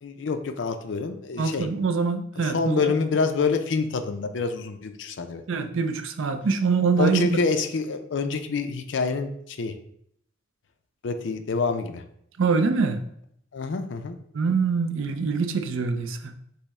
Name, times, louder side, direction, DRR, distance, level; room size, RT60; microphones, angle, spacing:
voice 1, 0.0-1.7 2.4-5.4 7.0-9.7 11.0-12.0 13.5-14.2, left 4 dB, 65° left, 0.4 m, -27 dB
voice 2, 1.4-2.9 5.5-7.4 12.4-13.0 14.3-16.3, right 5 dB, 80° right, 0.5 m, -24 dB
5.5 x 2.1 x 4.1 m
head